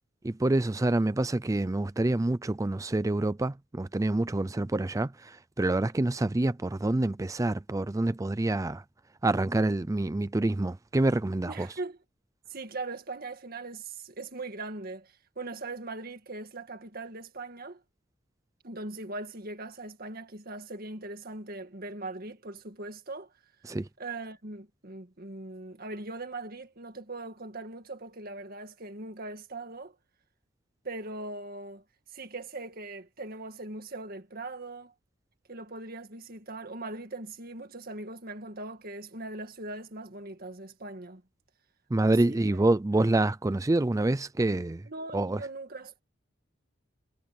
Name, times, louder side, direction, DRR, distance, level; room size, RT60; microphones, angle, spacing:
voice 1, 0.2-8.8 9.2-11.7 23.6-23.9 41.9-44.9 45.1-45.4, right 2 dB, 15° right, 0.4 m, -27 dB
voice 2, 11.4-12.0 12.5-17.8 18.6-23.3 24.0-30.0 30.8-31.8 32.1-34.9 35.5-41.2 42.0-42.6 44.9-46.0, right 2 dB, 50° right, 2.0 m, -40 dB
head